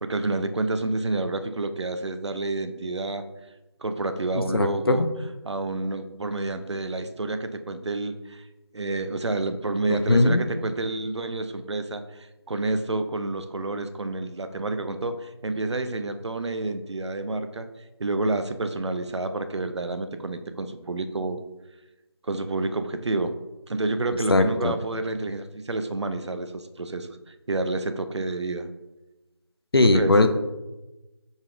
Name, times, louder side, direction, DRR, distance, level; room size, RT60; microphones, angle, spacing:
voice 1, 0.0-3.3 3.8-5.0 5.4-8.4 8.7-17.7 18.0-21.4 22.2-23.4 23.7-28.7 29.8-30.1, right 2 dB, 90° right, 9 dB, 0.5 m, -29 dB
voice 2, 4.5-5.1 9.9-10.4 24.3-24.7 29.7-30.3, left 2 dB, 60° left, 8 dB, 0.4 m, -19 dB
4.7 x 4.0 x 2.4 m, 1.0 s
figure-of-eight pair, 175°, 14 cm